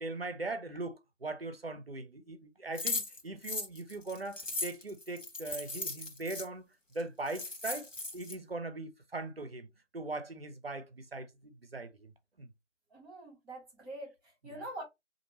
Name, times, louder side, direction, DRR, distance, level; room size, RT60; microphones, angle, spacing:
voice 1, 0.0-6.6 6.9-9.7 9.9-12.1 12.4-12.5, right 2 dB, 50° right, 0.7 m, -40 dB
sound 1, 2.8-6.5 7.0-7.1 7.3-8.3, left 3 dB, 85° left, 1.2 m, -37 dB
voice 2, 12.9-14.8, right 1 dB, 15° right, 2.4 m, -45 dB
4.4 x 2.6 x 2.8 m
figure-of-eight pair, 160°, 37 cm